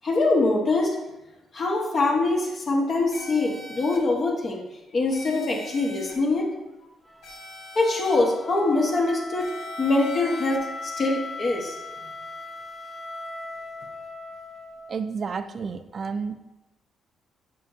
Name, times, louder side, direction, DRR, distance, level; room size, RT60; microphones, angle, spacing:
voice 1, 0.0-0.9 1.5-4.6 4.9-6.5 7.7-9.5 9.8-11.8, left 2 dB, 50° left, -1 dB, 1.2 m, -23 dB
sound 1, 3.1-4.0 5.1-6.1 7.2-8.2 9.4-10.6, left 1 dB, 80° left, 1.2 m, -42 dB
Wind instrument woodwind instrument, 7.1-15.1, left 2 dB, ahead, 0.9 m, -38 dB
voice 2, 14.9-16.4, right 5 dB, 45° right, 10 dB, 0.4 m, -31 dB
7.3 x 4.7 x 2.7 m, 0.95 s
cardioid pair, 85°, 0 cm